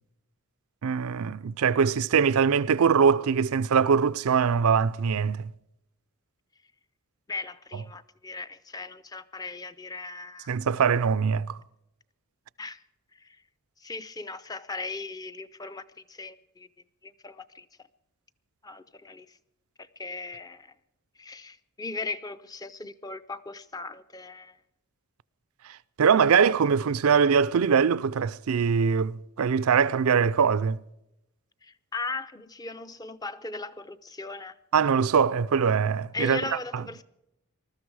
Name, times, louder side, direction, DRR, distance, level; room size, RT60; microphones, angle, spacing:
voice 1, 0.8-5.5 10.5-11.6 26.0-30.8 34.7-36.4, right 6 dB, 75° right, 0.4 m, -22 dB
voice 2, 7.3-10.5 12.6-12.8 13.1-13.4 13.8-16.7 17.0-17.7 18.6-19.4 19.8-20.7 21.2-24.6 26.1-26.2 31.6-34.6 36.1-37.0, left 3 dB, 15° left, 0.5 m, -38 dB
20.0 x 13.0 x 4.8 m
head